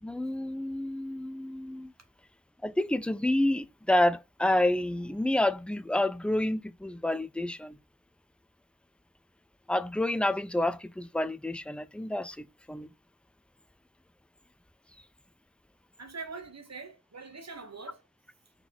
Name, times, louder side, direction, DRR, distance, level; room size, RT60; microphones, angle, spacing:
voice 1, 0.0-1.9 2.6-7.8 9.7-12.9, left 1 dB, 5° left, 0.4 m, -29 dB
voice 2, 16.0-18.0, right 4 dB, 60° right, 1.1 m, -43 dB
4.1 x 4.0 x 3.0 m
cardioid pair, 40°, 30 cm